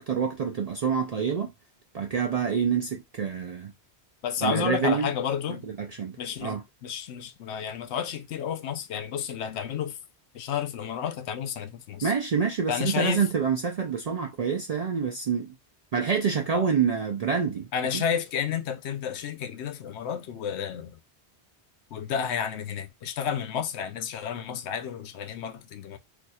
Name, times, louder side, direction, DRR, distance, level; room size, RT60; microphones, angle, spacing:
voice 1, 0.0-1.5 1.9-3.7 4.4-5.1 5.6-6.6 12.0-15.5 15.9-18.0, right 6 dB, 60° right, 0.4 m, -27 dB
voice 2, 4.2-5.7 6.2-10.0 10.3-12.1 12.7-13.2 16.5-16.7 17.7-21.0 21.9-26.0, left 8 dB, 80° left, 0.9 m, -31 dB
2.6 x 2.3 x 4.0 m
omnidirectional pair, 1.1 m